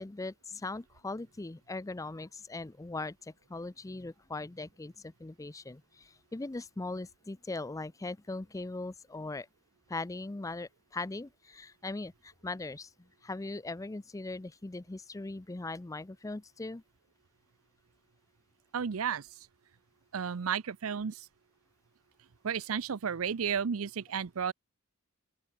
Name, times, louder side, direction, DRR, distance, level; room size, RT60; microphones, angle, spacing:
voice 1, 0.0-9.5 9.9-16.8, left 2 dB, 15° left, 0.4 m, -40 dB
voice 2, 18.7-19.3 20.1-21.3 22.4-24.5, right 7 dB, 75° right, 0.6 m, -33 dB
open air
head